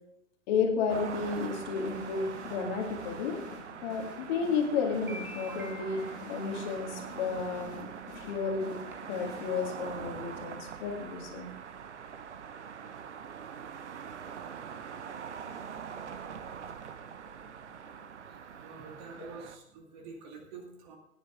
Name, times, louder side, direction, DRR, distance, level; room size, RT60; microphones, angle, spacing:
voice 1, 0.5-3.4 3.8-7.9 8.2-8.7 9.0-11.5 19.2-19.3, left 5 dB, 30° left, 1 dB, 2.3 m, -32 dB
sound 1, 0.9-19.6, right 7 dB, 55° right, 1.1 m, -43 dB
sound 2, 1.1-9.9, left 7 dB, 50° left, 1.7 m, -50 dB
sound 3, 2.6-2.7 3.9-4.0 4.5-4.6 4.9-6.9 8.0-8.1 8.5-8.6 8.9-9.3 9.6-9.7 9.9-10.0 10.3-10.4, left 1 dB, 5° right, 0.7 m, -47 dB
voice 2, 18.6-21.0, right 4 dB, 30° right, 3 dB, 2.2 m, -47 dB
18.5 x 10.0 x 3.7 m, 0.79 s
figure-of-eight pair, 125°, 43 cm